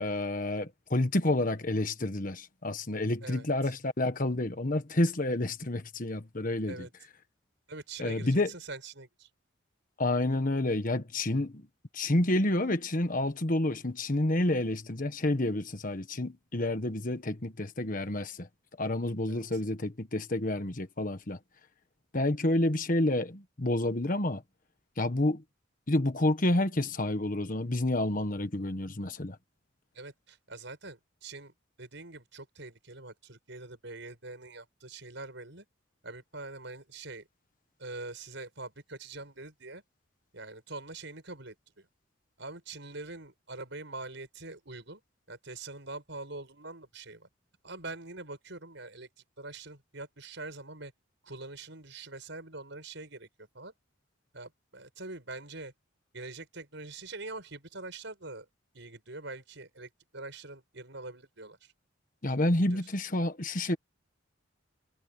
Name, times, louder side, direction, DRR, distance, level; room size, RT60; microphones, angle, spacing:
voice 1, 0.0-6.9 8.0-8.5 10.0-11.6 11.9-18.5 18.8-21.4 22.1-24.4 25.0-25.4 25.9-29.4 62.2-63.8, left 1 dB, 40° left, 1.4 m, -29 dB
voice 2, 3.2-3.8 6.7-6.9 7.7-9.3 19.3-19.6 29.9-31.5 31.8-35.6 36.0-37.3 37.8-39.8 40.3-41.9 42.4-45.0 45.3-47.3 47.6-49.1 49.4-50.9 51.2-53.7 54.3-55.7 56.1-58.5 58.7-61.7 62.7-62.8, right 3 dB, 65° right, 7.3 m, -44 dB
head